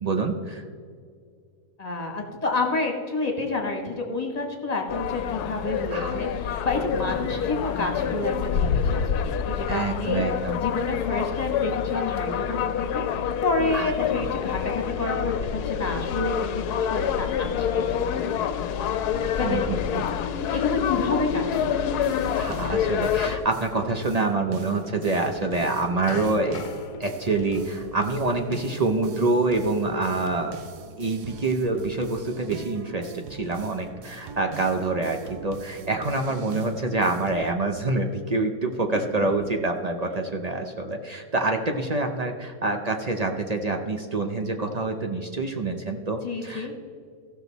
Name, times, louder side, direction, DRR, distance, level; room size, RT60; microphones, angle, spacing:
voice 1, 0.0-0.6 5.9-6.1 7.3-7.4 9.7-10.6 13.7-14.2 19.4-20.0 20.5-20.6 22.4-26.6 27.0-30.6 31.0-46.7, right 3 dB, 50° right, 4 dB, 0.4 m, -26 dB
voice 2, 1.8-10.2 10.6-17.8 19.4-19.6 20.5-21.9 38.9-39.0 46.2-46.7, left 3 dB, 25° left, 2 dB, 1.3 m, -29 dB
sound 1, 4.9-23.4, left 8 dB, 85° left, 1.2 m, -27 dB
sound 2, 21.5-37.5, right 5 dB, 85° right, 1.3 m, -43 dB
sound 3, 25.3-30.3, left 8 dB, 65° left, 0.9 m, -43 dB
15.5 x 6.4 x 4.0 m, 2.2 s
omnidirectional pair, 1.7 m